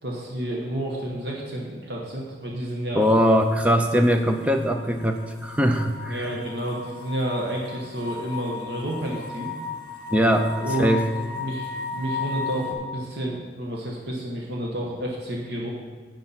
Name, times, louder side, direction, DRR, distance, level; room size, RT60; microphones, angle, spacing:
voice 1, 0.0-3.1 6.1-9.5 10.6-10.9 11.3-15.7, right 1 dB, 60° right, -2 dB, 1.4 m, -30 dB
voice 2, 2.9-6.3 10.1-10.5 10.8-11.0, equal, 10° right, 5 dB, 0.6 m, -21 dB
sound 1, 3.1-12.7, left 5 dB, 25° left, 1.4 m, -36 dB
10.0 x 8.6 x 4.2 m, 1.5 s
head